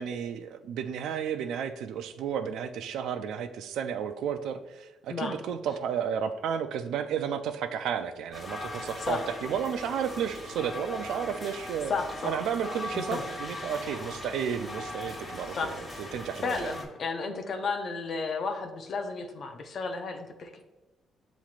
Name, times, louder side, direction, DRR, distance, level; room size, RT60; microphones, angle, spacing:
voice 1, 0.0-11.9 12.2-16.7, right 8 dB, 80° right, 9 dB, 0.3 m, -32 dB
sound 1, 8.3-16.9, left 1 dB, 25° left, 1.4 m, -39 dB
voice 2, 11.9-12.3 12.9-13.2 15.6-15.7 16.0-16.2 16.4-20.6, left 4 dB, 55° left, 5 dB, 0.6 m, -33 dB
7.0 x 3.0 x 2.4 m, 1.2 s
cardioid pair, 90°, 0 cm